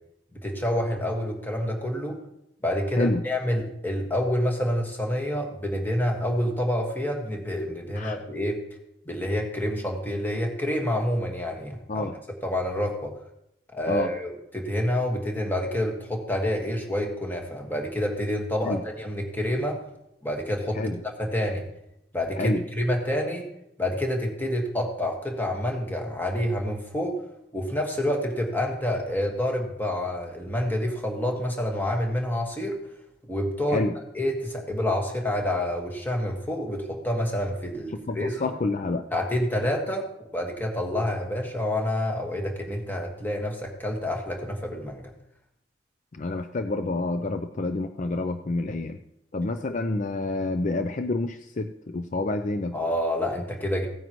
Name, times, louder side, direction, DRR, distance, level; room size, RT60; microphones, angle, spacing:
voice 1, 0.3-2.2 2.6-8.6 9.1-12.0 12.4-13.1 13.7-19.8 20.2-20.8 21.2-21.6 22.1-23.5 23.8-27.2 27.5-32.8 33.3-33.8 34.2-38.5 39.1-40.1 40.3-45.0 52.7-53.9, left 1 dB, 10° left, 1 dB, 1.7 m, -28 dB
voice 2, 38.1-39.1 46.1-49.0 49.3-52.7, left 2 dB, 40° left, 8 dB, 0.5 m, -28 dB
16.5 x 9.2 x 3.1 m, 0.81 s
head